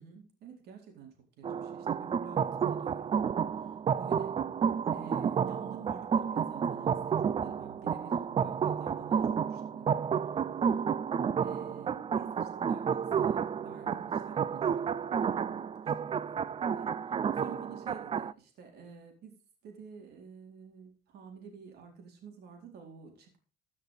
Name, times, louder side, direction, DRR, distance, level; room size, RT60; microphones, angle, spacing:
voice 1, 0.0-4.4 4.9-10.1 10.6-11.0 11.4-23.4, right 6 dB, 75° right, 3 dB, 4.2 m, -50 dB
sound 1, 1.4-18.3, right 7 dB, 35° right, 0.5 m, -31 dB
15.0 x 6.5 x 4.9 m, 0.37 s
cardioid pair, 110°, 17 cm